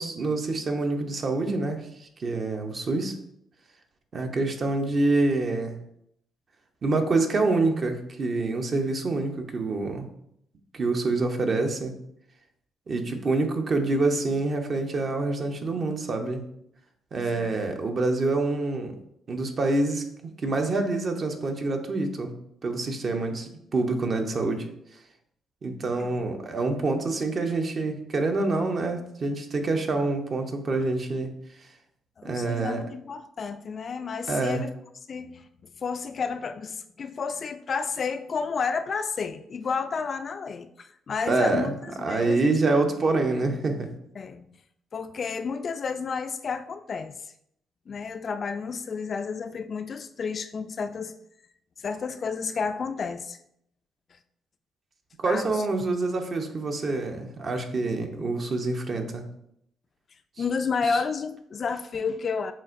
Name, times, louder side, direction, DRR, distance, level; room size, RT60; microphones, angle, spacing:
voice 1, 0.0-3.1 4.1-5.8 6.8-10.1 10.7-11.9 12.9-16.4 17.1-18.9 19.3-20.0 20.4-22.3 22.6-24.7 25.6-31.3 32.2-32.8 34.3-34.7 41.3-43.9 55.2-59.2 60.8-61.0, right 3 dB, 50° right, 4 dB, 0.7 m, -26 dB
voice 2, 32.2-34.7 35.1-42.5 44.2-44.5 44.9-47.1 47.9-51.1 51.8-53.4 55.3-55.5 60.4-62.5, left 5 dB, 50° left, 10 dB, 0.3 m, -31 dB
7.2 x 2.5 x 2.5 m, 0.73 s
supercardioid pair, 65°, 0 cm